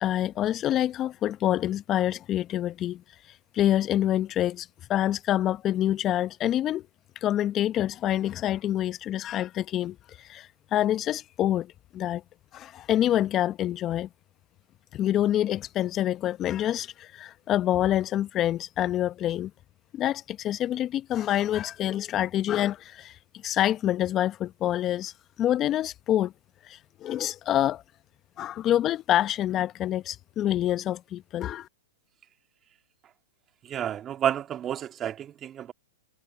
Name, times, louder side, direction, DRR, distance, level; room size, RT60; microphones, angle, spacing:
voice 1, 0.0-3.0 3.3-6.8 7.2-12.2 12.5-14.1 14.9-19.5 19.9-25.1 25.4-26.3 26.6-27.8 28.4-31.7, left 12 dB, 30° left, 0.9 m, -27 dB
voice 2, 33.6-35.7, right 10 dB, 25° right, 1.9 m, -30 dB
hypercardioid pair, 115°, 0 cm